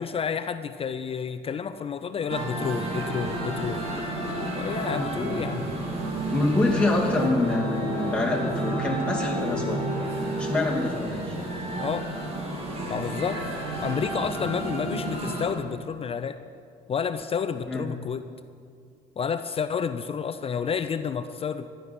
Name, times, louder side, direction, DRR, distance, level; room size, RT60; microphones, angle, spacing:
voice 1, 0.0-3.8 4.5-5.7 11.8-12.1 12.8-13.4 13.8-16.4 16.9-18.2 19.2-21.7, left 6 dB, 35° left, 11 dB, 0.5 m, -30 dB
sound 1, 2.3-15.5, right 1 dB, 35° right, 2.9 m, -31 dB
voice 2, 4.9-5.5 6.3-9.8 10.4-11.4 17.7-17.8, left 2 dB, 5° left, -3 dB, 2.5 m, -26 dB
14.0 x 11.0 x 6.0 m, 2.3 s
cardioid pair, 110°, 17 cm